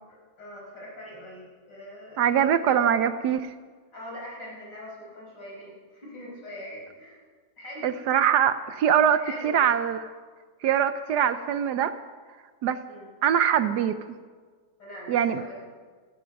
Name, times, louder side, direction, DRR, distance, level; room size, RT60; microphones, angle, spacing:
voice 1, 0.1-2.9 3.9-7.2 7.6-7.9 9.1-9.7 12.9-13.1 14.8-15.7, equal, 65° left, -3 dB, 5.7 m, -42 dB
voice 2, 2.2-3.5 7.8-10.1 10.6-12.0 12.6-12.8 13.2-14.0 15.1-15.4, right 9 dB, 70° right, 12 dB, 1.1 m, -23 dB
17.0 x 14.5 x 5.3 m, 1.5 s
omnidirectional pair, 2.0 m